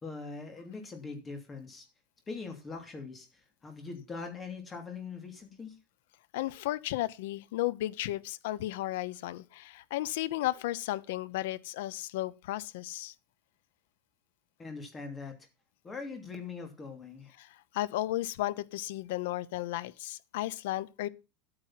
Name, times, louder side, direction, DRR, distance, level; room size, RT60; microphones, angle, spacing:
voice 1, 0.0-1.9 2.3-5.8 14.6-15.5 15.8-17.3, left 4 dB, 15° left, 2.8 m, -42 dB
voice 2, 6.3-13.1 17.4-17.5 17.7-21.1, left 15 dB, 75° left, 0.8 m, -34 dB
11.5 x 8.9 x 5.9 m
supercardioid pair, 165°, 0 cm